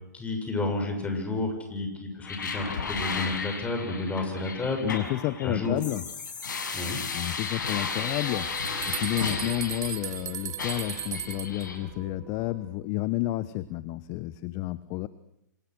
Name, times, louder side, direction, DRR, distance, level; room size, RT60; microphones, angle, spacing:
voice 1, 0.1-4.9 5.4-5.8 6.7-7.0, left 2 dB, 10° left, 4 dB, 7.3 m, -31 dB
sound 1, 2.2-10.2 10.6-11.8, left 5 dB, 75° left, 6.9 m, -34 dB
voice 2, 4.8-6.0 7.1-15.1, left 17 dB, 35° left, 16 dB, 1.1 m, -31 dB
sound 2, 7.6-12.6, right 6 dB, 30° right, 7.7 m, -47 dB
sound 3, 8.1-8.2 8.5-11.7, right 12 dB, 55° right, 1.3 m, -37 dB
29.0 x 27.5 x 6.5 m, 0.84 s
hypercardioid pair, 120°, 10 cm